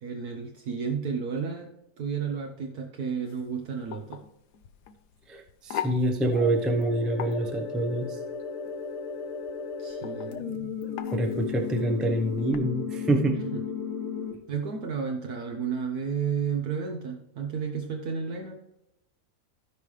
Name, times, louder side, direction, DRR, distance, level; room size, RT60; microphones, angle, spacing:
voice 1, 0.0-4.2 9.8-10.9 13.5-13.6 14.5-18.6, right 6 dB, 70° right, 2 dB, 1.4 m, -32 dB
sound 1, 3.3-12.6, left 9 dB, 80° left, 1.3 m, -42 dB
voice 2, 5.3-8.1 11.1-13.4, right 1 dB, ahead, 4 dB, 0.5 m, -26 dB
sound 2, 6.3-14.3, left 6 dB, 60° left, 1.5 m, -35 dB
16.0 x 5.4 x 3.2 m, 0.83 s
omnidirectional pair, 1.8 m